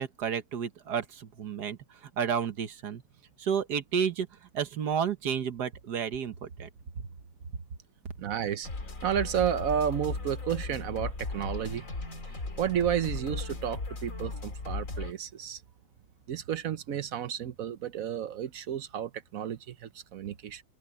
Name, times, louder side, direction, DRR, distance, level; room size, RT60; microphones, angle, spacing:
voice 1, 0.0-3.0 3.4-4.3 4.5-6.7 7.0-7.1, right 7 dB, 80° right, 1.8 m, -31 dB
voice 2, 8.2-8.7 9.0-11.8 12.6-15.6 16.3-20.6, right 9 dB, 65° right, 1.1 m, -31 dB
sound 1, 8.6-15.1, left 3 dB, 50° left, 3.1 m, -37 dB
open air
omnidirectional pair, 1.7 m